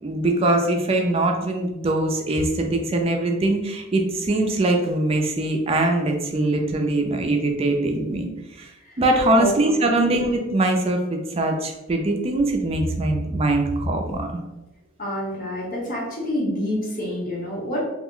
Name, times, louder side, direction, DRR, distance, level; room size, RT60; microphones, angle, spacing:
voice 1, 0.0-8.3 8.6-8.7 9.0-14.3, right 2 dB, 30° right, 3 dB, 0.3 m, -22 dB
voice 2, 15.0-17.8, equal, 40° left, -4 dB, 0.8 m, -27 dB
2.4 x 2.1 x 3.6 m, 1.0 s
head